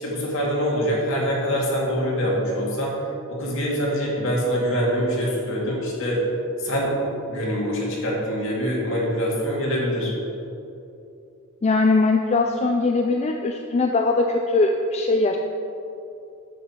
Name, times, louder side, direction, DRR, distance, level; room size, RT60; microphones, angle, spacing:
voice 1, 0.0-3.0 3.3-6.2 6.6-7.0 7.3-10.1, equal, 65° left, -3 dB, 2.2 m, -24 dB
voice 2, 11.6-15.4, left 3 dB, 30° left, 3 dB, 0.4 m, -21 dB
9.1 x 7.4 x 4.5 m, 2.7 s
head